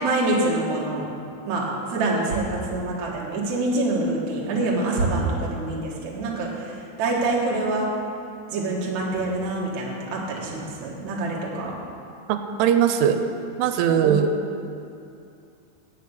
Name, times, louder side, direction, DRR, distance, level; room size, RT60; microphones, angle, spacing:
voice 1, 0.0-1.1 1.4-7.9 8.5-11.7 14.0-14.2, right 2 dB, 60° right, -3 dB, 2.0 m, -26 dB
voice 2, 12.3-13.2 13.6-14.3, right 9 dB, 90° right, 7 dB, 3.1 m, -20 dB
8.5 x 6.8 x 8.1 m, 2.6 s
omnidirectional pair, 5.5 m